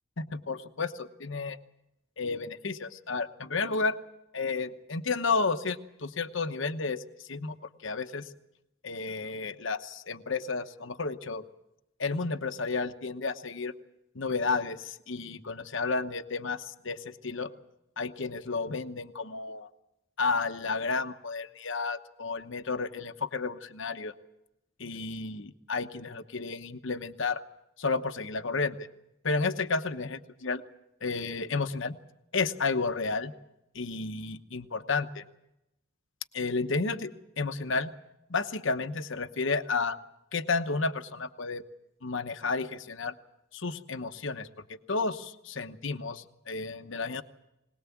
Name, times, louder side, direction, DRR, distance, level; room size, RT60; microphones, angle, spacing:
voice 1, 0.2-1.6 2.2-4.0 4.3-7.0 7.3-7.6 7.8-8.3 8.8-11.4 12.0-13.7 14.1-17.5 18.0-19.7 20.2-24.1 24.8-27.4 27.8-28.7 29.2-30.6 31.0-32.0 32.3-33.3 33.7-35.2 36.3-37.9 38.3-40.0 40.3-41.6 42.0-43.1 43.5-44.5 44.9-47.2, left 4 dB, 60° left, 10 dB, 1.0 m, -32 dB
21.0 x 20.0 x 7.2 m, 0.89 s
head